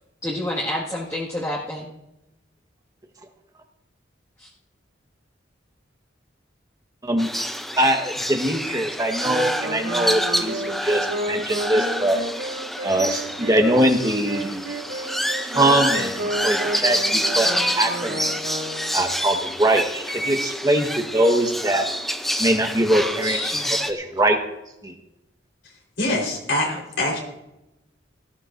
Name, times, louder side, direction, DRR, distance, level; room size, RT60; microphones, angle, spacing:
voice 1, 0.2-1.9 4.4-4.5 23.2-23.9, left 1 dB, 15° left, -6 dB, 1.9 m, -29 dB
sound 1, 7.2-23.9, equal, ahead, 0.6 m, -27 dB
voice 2, 7.8-12.2 12.8-14.6 15.4-18.4 18.9-21.9 22.4-23.4 23.9-24.4 24.8-24.9, right 1 dB, 20° right, 4 dB, 1.3 m, -22 dB
Wind instrument woodwind instrument, 9.2-19.1, right 1 dB, 90° right, 3.1 m, -31 dB
voice 3, 26.0-27.2, left 1 dB, 70° left, -1 dB, 4.2 m, -24 dB
18.0 x 14.5 x 2.6 m, 0.91 s
head